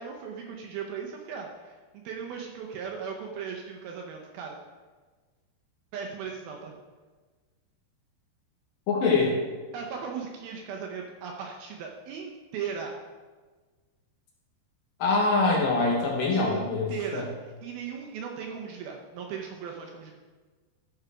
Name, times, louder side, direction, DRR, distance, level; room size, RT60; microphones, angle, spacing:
voice 1, 0.0-4.6 5.9-6.8 9.7-13.0 16.3-20.1, right 6 dB, 75° right, 1 dB, 2.4 m, -37 dB
voice 2, 8.9-9.4 15.0-17.2, left 3 dB, 65° left, -2 dB, 2.5 m, -24 dB
13.5 x 4.7 x 4.9 m, 1.4 s
omnidirectional pair, 4.9 m